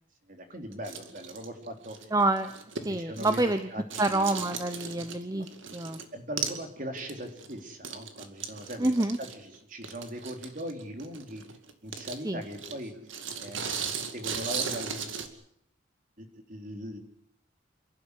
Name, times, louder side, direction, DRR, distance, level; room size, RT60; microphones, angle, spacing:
voice 1, 0.3-2.1 3.0-3.4 3.7-4.3 5.3-5.4 6.1-8.9 9.2-11.4 11.8-12.9 13.4-13.6 14.1-15.1 16.2-17.0, equal, 45° right, 5 dB, 3.7 m, -40 dB
sound 1, 0.7-3.6 3.9-6.1 6.4-6.7 7.0-15.3, right 6 dB, 85° right, 2.4 m, -38 dB
voice 2, 2.1-2.5 2.8-3.7 4.0-6.0 8.8-9.2 12.2-12.4, right 2 dB, 20° right, 9 dB, 0.9 m, -27 dB
28.5 x 12.0 x 9.9 m, 0.72 s
head